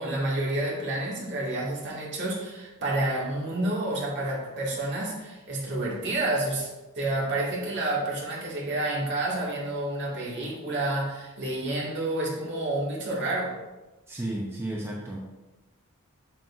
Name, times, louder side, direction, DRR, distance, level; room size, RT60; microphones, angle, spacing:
voice 1, 0.0-6.7 7.0-13.5, right 2 dB, 55° right, -4 dB, 2.0 m, -29 dB
voice 2, 14.1-15.2, right 1 dB, 10° right, -3 dB, 0.7 m, -33 dB
7.7 x 6.4 x 2.5 m, 1.1 s
head